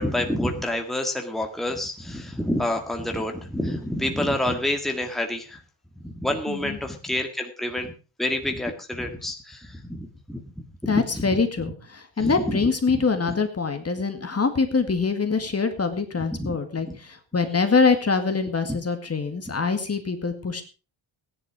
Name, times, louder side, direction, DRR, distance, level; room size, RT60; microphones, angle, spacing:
voice 1, 0.0-5.6 6.0-7.9 8.2-11.4 12.2-13.0 16.2-16.6 16.9-17.0 18.6-18.8, left 1 dB, ahead, 3 dB, 1.8 m, -28 dB
voice 2, 6.5-6.8 10.9-20.6, left 4 dB, 30° left, 7 dB, 2.0 m, -24 dB
15.5 x 10.5 x 4.8 m, 0.34 s
wide cardioid pair, 120°, 47 cm